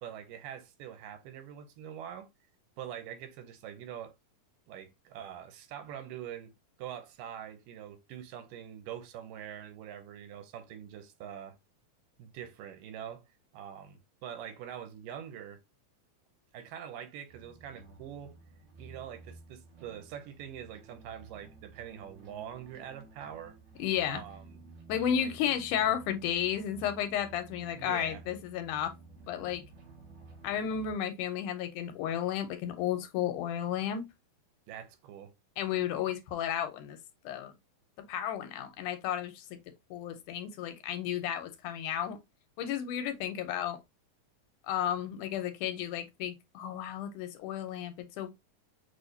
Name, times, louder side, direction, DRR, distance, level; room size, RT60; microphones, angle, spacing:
voice 1, 0.0-2.3 2.8-4.2 4.7-6.5 6.8-11.6 12.2-13.2 13.5-15.6 16.5-18.4 18.8-23.6 24.1-24.6 24.9-25.3 27.7-28.2 34.7-35.3, right 9 dB, 90° right, 2.3 m, -44 dB
sound 1, 17.3-30.9, right 3 dB, 55° right, 3.1 m, -53 dB
voice 2, 23.8-24.2 24.9-28.9 29.3-29.6 30.4-34.1 35.6-37.0 37.2-37.5 38.1-39.6 39.9-42.2 42.6-43.8 44.7-48.3, left 10 dB, 80° left, 2.1 m, -33 dB
6.4 x 2.6 x 2.7 m
omnidirectional pair, 3.8 m